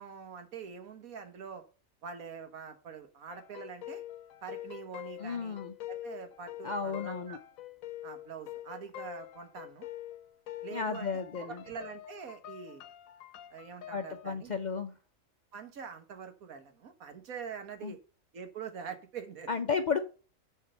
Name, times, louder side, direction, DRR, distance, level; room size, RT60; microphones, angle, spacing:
voice 1, 0.0-1.6 2.0-4.0 4.4-5.6 5.9-7.4 8.0-9.8 10.6-11.1 11.4-12.8 13.5-14.5 15.5-18.0 18.3-19.6, right 6 dB, 90° right, 8 dB, 1.7 m, -44 dB
sound 1, 3.3-14.3, left 13 dB, 80° left, 1.1 m, -45 dB
voice 2, 5.2-5.7 6.6-7.4 10.7-11.6 13.9-14.9 17.8-17.9 19.5-20.0, left 5 dB, 60° left, 7 dB, 0.4 m, -33 dB
7.0 x 4.6 x 6.6 m, 0.37 s
omnidirectional pair, 1.4 m